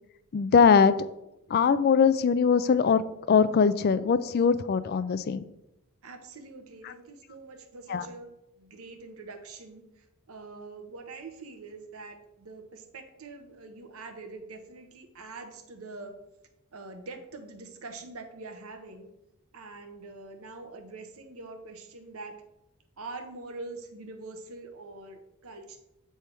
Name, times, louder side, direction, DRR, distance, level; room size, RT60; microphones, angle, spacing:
voice 1, 0.3-0.9 1.5-3.0 3.3-5.4 6.8-6.9 7.9-8.1, left 6 dB, 45° left, 14 dB, 0.3 m, -21 dB
voice 2, 6.0-8.3 8.6-9.8 10.3-16.1 16.7-19.1 19.5-22.4 23.0-25.8, right 3 dB, 75° right, 6 dB, 0.9 m, -44 dB
8.5 x 3.4 x 4.5 m, 0.88 s
head